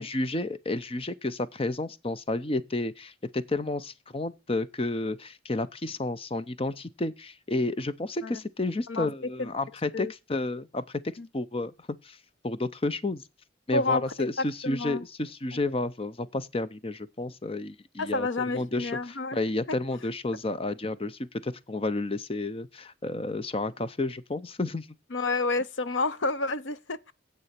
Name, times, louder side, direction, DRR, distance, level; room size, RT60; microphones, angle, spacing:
voice 1, 0.0-11.0 11.3-11.7 12.0-12.2 12.4-13.2 13.7-24.9, left 2 dB, 30° left, 0.6 m, -31 dB
voice 2, 13.7-15.0 18.0-19.4 25.1-27.1, left 3 dB, 80° left, 0.8 m, -29 dB
9.7 x 8.3 x 5.8 m
head